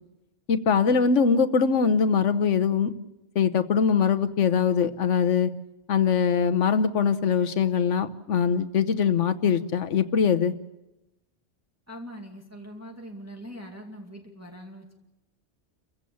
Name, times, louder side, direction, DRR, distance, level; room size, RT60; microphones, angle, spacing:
voice 1, 0.5-2.9 3.3-5.5 5.9-10.5, left 6 dB, 90° left, 10 dB, 1.3 m, -22 dB
voice 2, 11.9-15.0, equal, 15° right, 0 dB, 2.4 m, -42 dB
28.5 x 16.0 x 7.0 m, 0.96 s
omnidirectional pair, 1.2 m